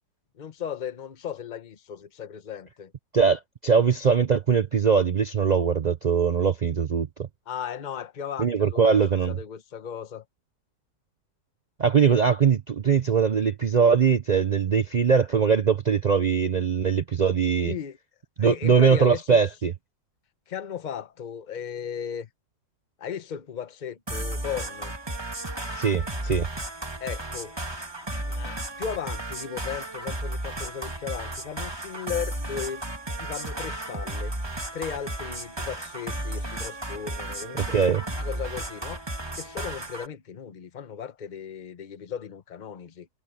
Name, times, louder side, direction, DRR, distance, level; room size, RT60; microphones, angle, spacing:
voice 1, 0.3-2.9 7.5-9.0 9.3-10.2 17.6-18.0 18.4-19.4 20.5-22.3 23.0-25.0 27.0-27.6 28.3-32.8 33.2-34.4 34.7-37.8 38.1-39.1 39.4-43.1, left 8 dB, 35° left, 0.9 m, -36 dB
voice 2, 3.1-7.3 8.4-9.4 11.8-17.7 18.4-19.7 25.8-26.5 37.7-38.0, right 6 dB, 75° right, 0.4 m, -21 dB
sound 1, 24.1-40.1, right 1 dB, 15° right, 2.3 m, -34 dB
omnidirectional pair, 1.7 m